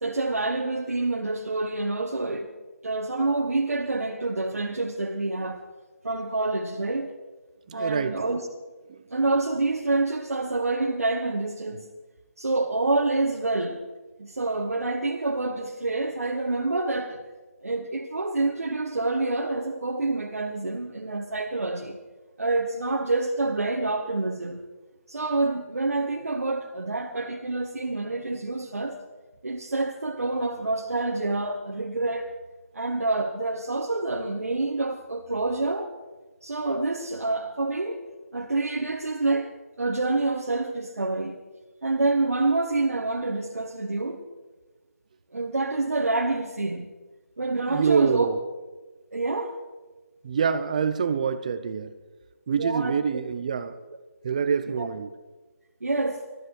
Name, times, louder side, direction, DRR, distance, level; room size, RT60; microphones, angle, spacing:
voice 1, 0.0-2.5 2.8-5.6 6.0-7.1 7.7-8.4 9.1-11.8 12.4-13.8 14.2-17.2 17.6-22.0 22.4-24.6 25.1-28.9 29.4-32.3 32.7-35.9 36.4-38.0 38.3-39.5 39.8-41.4 41.8-44.2 45.3-46.9 47.4-48.3 49.1-49.6 52.5-52.9 54.8-54.9 55.8-56.2, right 2 dB, 70° right, 0 dB, 1.6 m, -27 dB
voice 2, 7.7-8.2 8.9-9.0 47.6-48.4 50.2-51.9 52.5-53.8 54.2-55.1, right 6 dB, 30° right, 12 dB, 0.7 m, -26 dB
20.0 x 13.5 x 4.7 m, 1.2 s
figure-of-eight pair, 160°, 8 cm